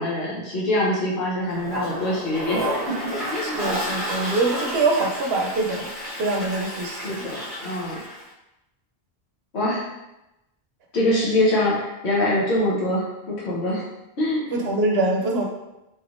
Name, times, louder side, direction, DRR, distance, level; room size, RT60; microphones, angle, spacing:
voice 1, 0.0-2.6 3.3-3.6 7.0-8.0 9.5-9.8 10.9-13.8 14.2-14.5, left 1 dB, 90° left, -6 dB, 1.2 m, -24 dB
Toilet flush, 1.5-8.3, equal, 15° right, 1.4 m, -31 dB
voice 2, 3.4-5.9 6.2-7.2 14.5-15.5, right 2 dB, 75° right, 0 dB, 0.8 m, -24 dB
4.2 x 3.3 x 2.5 m, 0.93 s
omnidirectional pair, 1.1 m